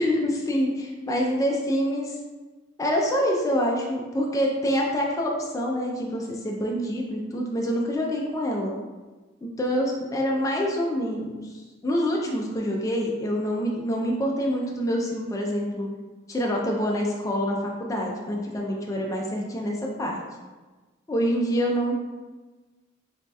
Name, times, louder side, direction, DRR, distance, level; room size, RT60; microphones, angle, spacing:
voice 1, 0.0-2.2 2.8-8.7 9.6-11.3 11.8-15.9 16.3-20.2 21.1-21.9, equal, 15° left, -1 dB, 0.3 m, -26 dB
3.0 x 2.7 x 2.2 m, 1.3 s
head